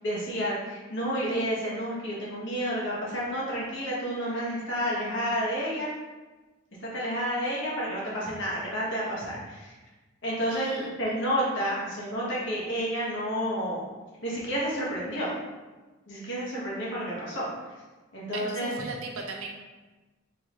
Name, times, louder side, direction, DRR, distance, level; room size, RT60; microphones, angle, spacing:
voice 1, 0.0-5.9 6.8-9.7 10.2-13.9 14.2-15.4 16.1-17.5 18.1-18.7, equal, 60° left, -6 dB, 1.4 m, -30 dB
voice 2, 10.5-10.9 18.3-19.5, right 3 dB, 90° right, 1 dB, 0.7 m, -38 dB
3.8 x 3.7 x 3.1 m, 1.2 s
head